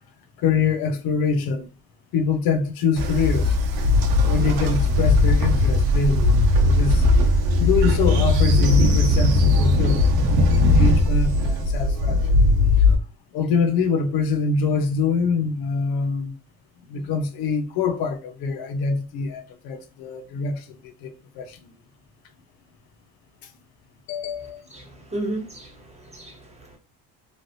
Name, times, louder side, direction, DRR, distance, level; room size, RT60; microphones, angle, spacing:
voice 1, 0.4-1.7 2.1-3.6 4.3-7.0 7.6-10.1 10.6-12.4 12.8-13.0 13.3-16.4 16.9-21.7 23.4-23.5 24.1-24.6, left 5 dB, 75° left, 0.7 m, -25 dB
Train, 3.0-13.0, left 2 dB, 90° right, 0.8 m, -18 dB
voice 2, 24.7-26.8, right 1 dB, 20° right, 1.4 m, -34 dB
3.2 x 2.6 x 2.6 m
cardioid pair, 100°, 36 cm